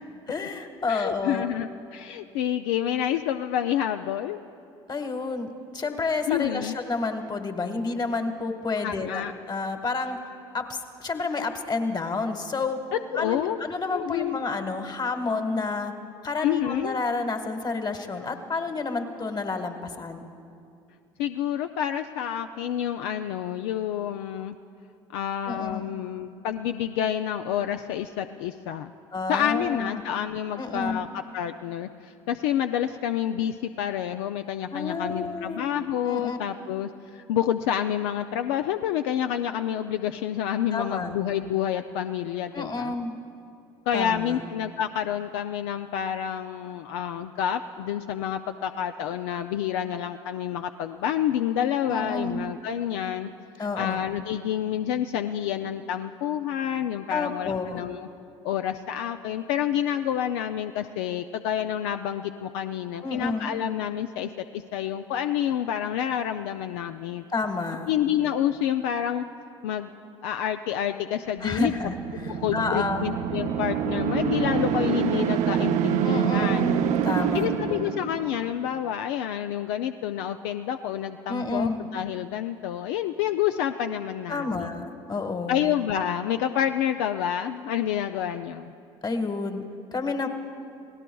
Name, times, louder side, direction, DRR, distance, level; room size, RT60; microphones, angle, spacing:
voice 1, 0.3-1.5 4.9-10.2 10.5-12.8 13.1-15.9 16.2-20.3 25.5-26.0 29.1-30.0 30.6-31.1 34.7-35.7 36.1-36.4 40.7-41.2 42.5-43.1 43.9-44.4 51.9-52.5 53.6-54.0 57.1-57.8 63.0-63.5 67.3-67.9 71.4-73.1 76.0-77.9 81.3-81.9 84.3-85.7 89.0-89.6 89.9-90.3, left 3 dB, 30° left, 6 dB, 1.5 m, -30 dB
voice 2, 0.9-4.4 6.3-6.8 8.8-9.3 12.9-13.6 13.9-14.4 16.4-17.0 21.2-24.6 25.1-28.9 29.3-42.9 43.9-53.3 53.6-58.1 58.4-67.3 67.9-69.2 69.6-69.9 70.2-71.8 72.3-76.8 77.3-84.7 85.5-88.7, left 10 dB, 80° left, 7 dB, 0.4 m, -28 dB
sound 1, 71.5-78.5, right 9 dB, 60° right, 0.7 m, -26 dB
28.5 x 17.5 x 2.3 m, 2.4 s
hypercardioid pair, 65°, 14 cm